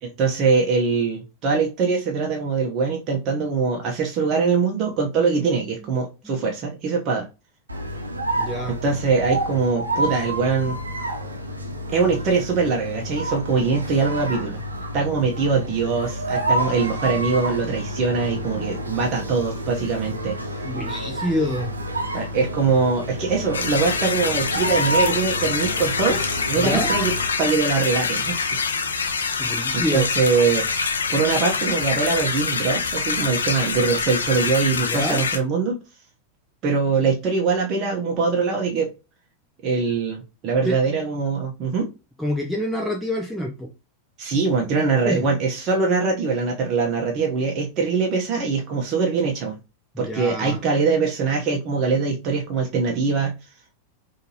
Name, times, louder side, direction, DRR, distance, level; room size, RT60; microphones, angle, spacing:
voice 1, 0.0-7.2 8.8-10.8 11.9-14.6 14.9-20.4 22.1-28.6 29.7-30.6 31.1-35.8 36.6-38.9 39.6-41.9 44.2-49.6 50.0-53.3, right 4 dB, 35° right, 0 dB, 1.0 m, -22 dB
sound 1, 7.7-27.4, right 1 dB, 80° right, 0.8 m, -29 dB
voice 2, 8.4-8.7 20.6-21.7 22.3-22.4 26.5-26.9 29.4-30.1 34.8-35.2 40.6-40.8 42.2-43.7 45.0-45.3 49.9-50.6, equal, ahead, -1 dB, 0.7 m, -27 dB
sound 2, 23.5-35.4, left 5 dB, 70° left, 0.6 m, -25 dB
5.1 x 2.8 x 2.9 m, 0.29 s
figure-of-eight pair, 90°, 0 cm